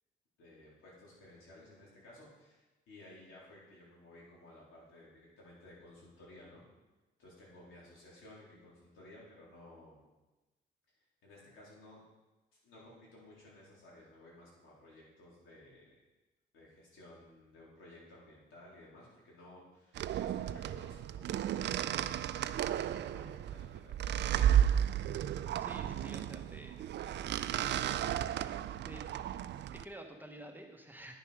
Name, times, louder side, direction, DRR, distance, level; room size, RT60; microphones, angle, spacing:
voice 1, 0.4-6.6 7.2-10.1 10.9-12.0 12.6-15.9 16.5-21.7 22.3-24.2, left 1 dB, 90° left, -5 dB, 3.7 m, -56 dB
sound 1, 19.9-29.8, right 10 dB, 60° right, 0.4 m, -33 dB
voice 2, 25.6-26.9 28.8-29.0 29.7-31.2, right 1 dB, 10° right, 3 dB, 1.2 m, -50 dB
10.0 x 6.6 x 5.0 m, 1.1 s
cardioid pair, 90°, 20 cm